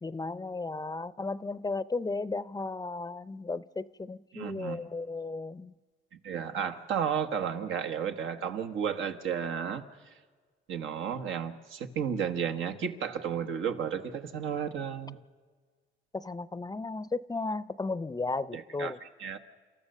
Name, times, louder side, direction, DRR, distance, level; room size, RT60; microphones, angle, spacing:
voice 1, 0.0-5.7 16.1-19.0, left 3 dB, 20° left, 16 dB, 0.5 m, -35 dB
voice 2, 4.3-4.9 6.2-9.8 10.7-15.2 18.5-19.4, right 7 dB, 85° right, 7 dB, 1.3 m, -33 dB
30.0 x 14.0 x 6.6 m, 1.5 s
cardioid pair, 90°, 20 cm